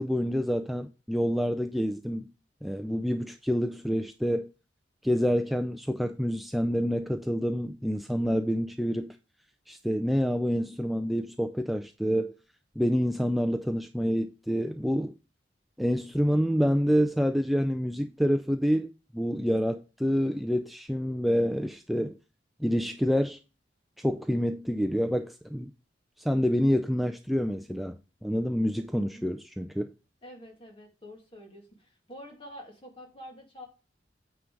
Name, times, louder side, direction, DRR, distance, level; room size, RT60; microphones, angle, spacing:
voice 1, 0.0-2.3 2.6-4.5 5.0-9.2 9.7-12.3 12.8-15.1 15.8-22.2 22.6-23.4 24.0-25.7 26.2-29.9, equal, ahead, 0.4 m, -27 dB
voice 2, 28.9-29.3 30.2-33.7, equal, 30° left, 2.2 m, -47 dB
9.1 x 3.9 x 4.8 m
head